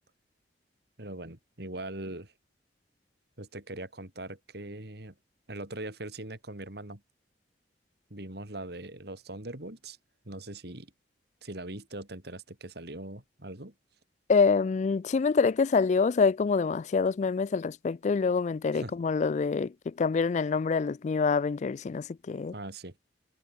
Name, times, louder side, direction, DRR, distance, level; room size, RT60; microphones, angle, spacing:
voice 1, 1.0-2.3 3.4-5.1 5.5-7.0 8.1-10.0 10.3-10.9 11.4-13.7 18.7-18.9 22.5-22.9, right 1 dB, 65° right, 3.7 m, -41 dB
voice 2, 14.3-22.5, left 5 dB, 40° left, 0.3 m, -26 dB
head